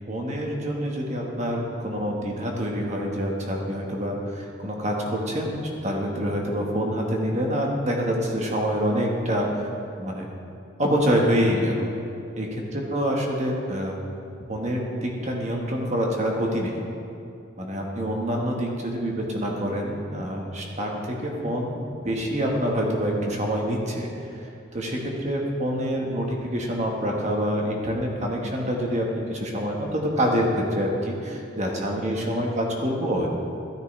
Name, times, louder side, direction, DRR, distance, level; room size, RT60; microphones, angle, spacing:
voice 1, 0.0-9.6 10.0-10.3 10.8-11.9 12.3-14.0 14.5-16.8 17.6-21.8 22.0-24.1 24.7-33.3, equal, 35° right, 0 dB, 1.3 m, -26 dB
13.0 x 9.3 x 3.2 m, 2.6 s
head